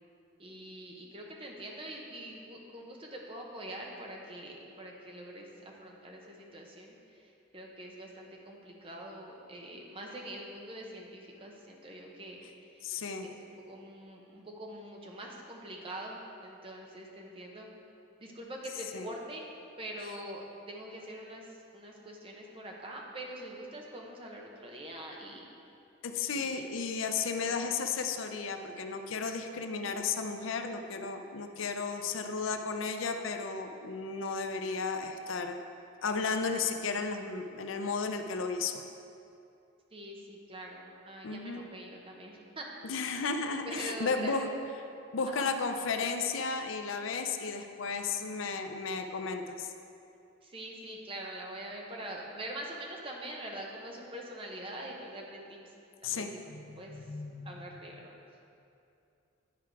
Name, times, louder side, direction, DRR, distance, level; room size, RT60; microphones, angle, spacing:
voice 1, 0.4-12.8 13.2-17.7 18.2-19.5 19.8-25.4 26.3-26.7 27.5-27.6 39.9-42.7 43.6-44.5 45.3-45.5 50.4-55.7 56.0-56.4 56.7-57.0 57.4-58.1, right 1 dB, 25° right, -1 dB, 0.9 m, -44 dB
voice 2, 12.8-13.3 18.9-19.1 26.0-35.6 36.0-38.7 41.2-41.7 42.8-44.5 45.1-49.7 56.0-57.6, left 4 dB, 80° left, 6 dB, 0.5 m, -34 dB
10.5 x 4.7 x 4.7 m, 2.6 s
head